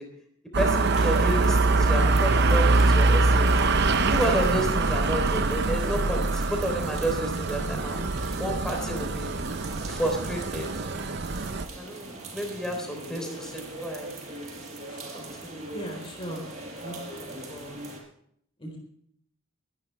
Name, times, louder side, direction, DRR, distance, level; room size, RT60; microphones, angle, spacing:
sound 1, 0.5-11.6, right 3 dB, 55° right, 0.8 m, -24 dB
voice 1, 0.6-3.5 4.1-8.0 8.4-9.3 9.8-10.7 11.7-14.1 15.1-15.7, equal, 5° left, 2 dB, 3.5 m, -31 dB
sound 2, 0.7-18.0, right 2 dB, 35° right, 5.1 m, -41 dB
voice 2, 15.7-16.4 16.8-17.8 18.6-18.8, equal, 25° left, 1 dB, 4.2 m, -39 dB
23.0 x 11.5 x 3.4 m, 0.67 s
head